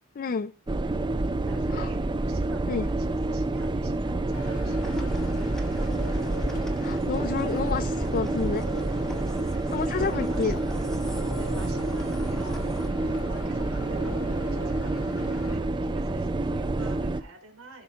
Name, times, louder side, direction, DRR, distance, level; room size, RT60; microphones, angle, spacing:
voice 1, 0.2-0.5 1.7-1.9 2.7-2.9 6.8-8.7 9.7-10.6, left 5 dB, 40° left, 0.4 m, -29 dB
sound 1, 0.7-17.2, right 2 dB, 20° right, 0.4 m, -28 dB
voice 2, 1.4-6.4 9.5-10.8 11.4-17.8, right 3 dB, 80° right, 3.1 m, -49 dB
sound 2, 4.3-15.6, left 1 dB, 85° left, 1.5 m, -41 dB
sound 3, 4.8-12.9, equal, 5° left, 1.1 m, -40 dB
15.5 x 5.7 x 3.6 m
head